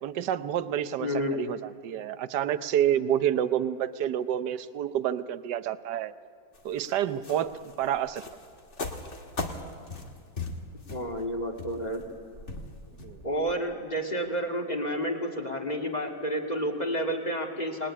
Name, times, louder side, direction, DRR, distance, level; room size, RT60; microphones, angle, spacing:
voice 1, 0.0-6.1 6.6-8.2 13.0-13.2, right 10 dB, 65° right, 12 dB, 1.4 m, -29 dB
voice 2, 1.0-1.4 10.9-12.0 13.2-17.9, equal, 20° left, 2 dB, 2.5 m, -30 dB
sound 1, 6.5-13.6, left 3 dB, 40° left, 2.1 m, -39 dB
28.0 x 20.5 x 10.0 m, 2.2 s
omnidirectional pair, 2.1 m